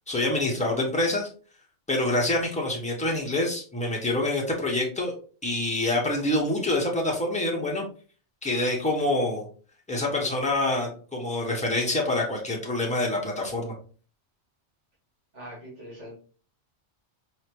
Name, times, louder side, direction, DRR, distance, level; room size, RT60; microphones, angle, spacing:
voice 1, 0.1-1.3 1.9-5.1 5.4-7.8 8.4-9.5 9.9-13.7, left 2 dB, 5° left, -2 dB, 1.0 m, -26 dB
voice 2, 15.3-16.2, equal, 90° right, -5 dB, 2.1 m, -42 dB
4.7 x 2.9 x 2.9 m, 0.40 s
omnidirectional pair, 1.2 m